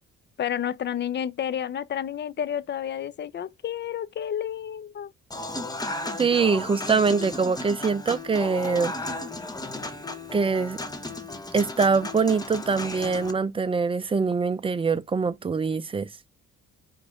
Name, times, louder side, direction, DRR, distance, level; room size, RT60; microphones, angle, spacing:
voice 1, 0.4-5.1, left 9 dB, 35° left, 0.4 m, -30 dB
Human voice / Acoustic guitar / Piano, 5.3-13.3, left 2 dB, 15° left, 0.8 m, -35 dB
voice 2, 6.2-8.9 10.3-10.8 11.5-16.1, right 5 dB, 20° right, 0.5 m, -24 dB
4.9 x 2.6 x 3.5 m
cardioid pair, 90°, 30 cm